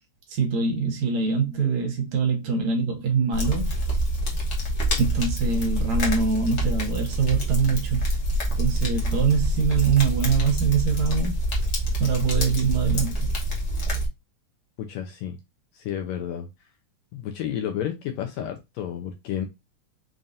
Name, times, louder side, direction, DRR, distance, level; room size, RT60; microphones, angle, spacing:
voice 1, 0.3-3.7 5.0-8.1 8.6-11.4 12.0-13.3, right 5 dB, 70° right, 2.2 m, -24 dB
sound 1, 3.3-14.1, right 1 dB, 55° left, 1.0 m, -26 dB
voice 2, 14.8-15.4 15.7-16.5 17.1-19.5, left 10 dB, 80° left, 1.6 m, -31 dB
5.3 x 2.4 x 2.5 m
omnidirectional pair, 3.4 m